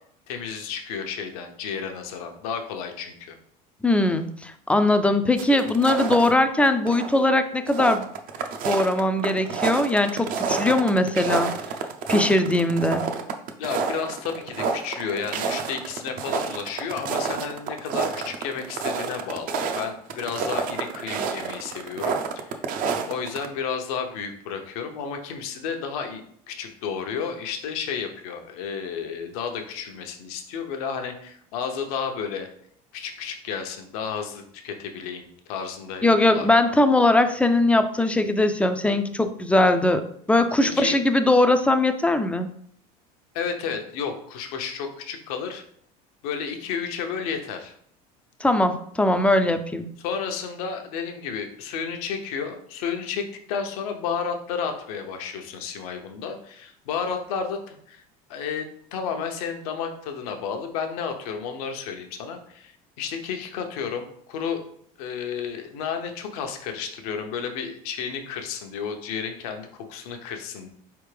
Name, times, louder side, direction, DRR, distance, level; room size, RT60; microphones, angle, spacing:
voice 1, 0.3-3.3 13.6-22.6 23.1-26.2 26.5-32.5 32.9-36.5 40.6-41.0 43.3-45.6 46.2-47.7 50.0-58.0 58.3-62.7 63.0-64.6 65.0-70.7, left 6 dB, 80° left, 5 dB, 0.7 m, -32 dB
voice 2, 3.8-8.1 8.6-11.5 12.1-13.0 36.0-42.5 48.4-49.9, left 2 dB, 5° left, 9 dB, 0.3 m, -20 dB
sound 1, 5.4-6.3 6.7-7.3 7.5-23.5, right 5 dB, 50° right, 0.5 m, -29 dB
4.2 x 3.5 x 3.2 m, 0.65 s
supercardioid pair, 110°, 19 cm